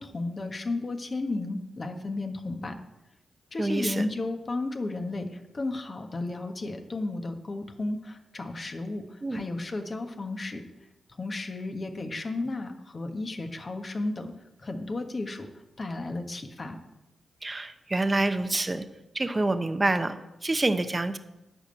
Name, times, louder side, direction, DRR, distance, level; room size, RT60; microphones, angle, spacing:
voice 1, 0.0-2.8 3.5-10.6 11.2-14.3 14.6-15.5 15.8-16.8, left 2 dB, 45° left, 5 dB, 1.5 m, -33 dB
voice 2, 3.6-4.0 9.2-9.4 17.4-18.9 19.1-20.2 20.4-21.2, right 2 dB, 30° right, 10 dB, 0.9 m, -27 dB
11.0 x 5.3 x 7.9 m, 0.96 s
supercardioid pair, 50°, 0 cm